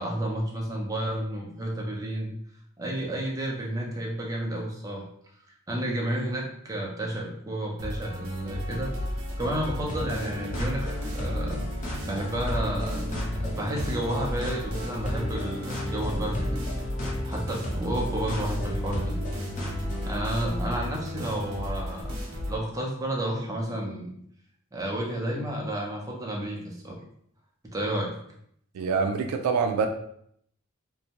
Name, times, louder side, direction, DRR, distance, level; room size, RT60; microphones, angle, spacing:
voice 1, 0.0-2.3 2.8-5.0 5.7-11.7 12.1-13.1 13.4-16.6 17.2-19.2 20.1-22.2 22.4-24.1 24.7-27.0 27.7-28.1, right 1 dB, 15° right, -2 dB, 0.5 m, -31 dB
sound 1, 7.8-22.6, equal, 65° right, 0.7 m, -34 dB
sound 2, 9.9-20.2, equal, 35° left, 0.6 m, -34 dB
voice 2, 28.7-29.9, right 5 dB, 90° right, 8 dB, 0.3 m, -25 dB
2.6 x 2.1 x 2.8 m, 0.68 s
head